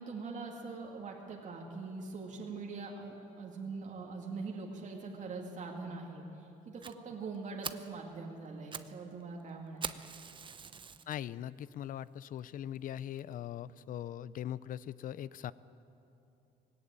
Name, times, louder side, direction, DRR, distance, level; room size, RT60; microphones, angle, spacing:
voice 1, 0.0-10.1, right 4 dB, 45° right, -1 dB, 2.3 m, -43 dB
Fire, 6.8-6.9 7.3-7.4 7.6-7.9 8.5-8.9 9.2-9.3 9.8-11.2 11.7-11.8 12.4-12.5 12.8-12.9 13.2-13.3, right 6 dB, 30° right, 0.7 m, -42 dB
voice 2, 11.1-15.5, left 11 dB, 55° left, 18 dB, 0.6 m, -41 dB
18.5 x 17.5 x 8.9 m, 2.8 s
cardioid pair, 110°, 17 cm